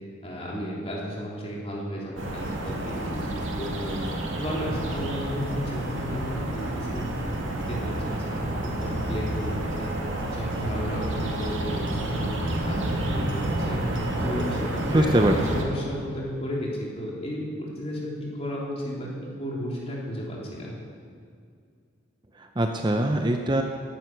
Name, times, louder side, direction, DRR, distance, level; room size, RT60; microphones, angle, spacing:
voice 1, 0.2-4.0 4.4-9.9 10.3-13.8 14.2-20.7, equal, 30° left, -4 dB, 3.5 m, -33 dB
sound 1, 2.2-15.6, right 1 dB, 80° right, 2.2 m, -30 dB
voice 2, 14.9-15.3 22.4-23.6, right 1 dB, 25° right, 4 dB, 0.6 m, -22 dB
16.5 x 11.5 x 6.1 m, 2.2 s
head